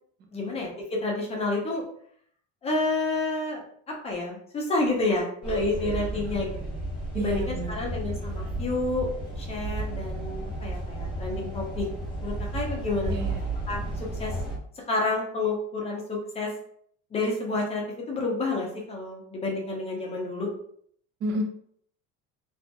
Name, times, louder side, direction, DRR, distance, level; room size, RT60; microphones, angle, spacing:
voice 1, 0.3-0.7 1.0-1.8 2.6-3.6 3.9-6.6 7.1-9.1 9.4-11.9 12.2-13.1 13.7-13.8 14.2-14.3 14.9-16.5 17.1-17.8 18.1-20.5, left 2 dB, 20° left, -1 dB, 0.6 m, -29 dB
sound 1, 5.4-14.6, right 1 dB, 5° right, 0.9 m, -33 dB
voice 2, 7.1-7.9 13.1-13.4 21.2-21.4, right 1 dB, 35° right, 2 dB, 0.5 m, -31 dB
2.8 x 2.4 x 2.2 m, 0.63 s
cardioid pair, 160°, 30 cm